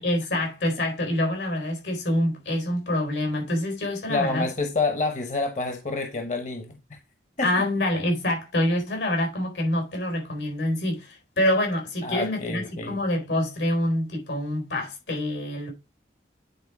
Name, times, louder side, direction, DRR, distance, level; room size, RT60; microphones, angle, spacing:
voice 1, 0.0-4.5 7.4-15.7, left 1 dB, 85° left, 4.3 m, -26 dB
voice 2, 4.1-7.0 7.4-7.5 12.0-13.0, left 3 dB, 40° left, 1.0 m, -28 dB
9.5 x 4.3 x 4.8 m
head